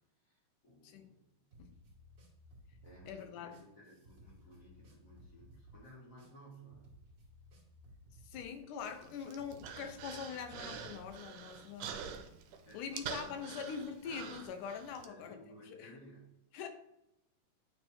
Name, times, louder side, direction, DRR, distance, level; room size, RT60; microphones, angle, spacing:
voice 1, 0.2-1.5 2.8-7.0 8.3-8.5 12.6-13.7 15.0-16.4, equal, 30° left, -4 dB, 1.8 m, -57 dB
sound 1, 1.5-12.2, equal, 45° right, 1.7 m, -59 dB
voice 2, 3.1-3.5 8.2-12.0 12.7-15.4 15.7-16.0 16.5-16.7, left 7 dB, 85° left, 7 dB, 2.2 m, -43 dB
Human voice, 8.8-15.1, right 7 dB, 80° right, 2.1 m, -46 dB
8.9 x 3.3 x 4.3 m, 0.84 s
omnidirectional pair, 3.7 m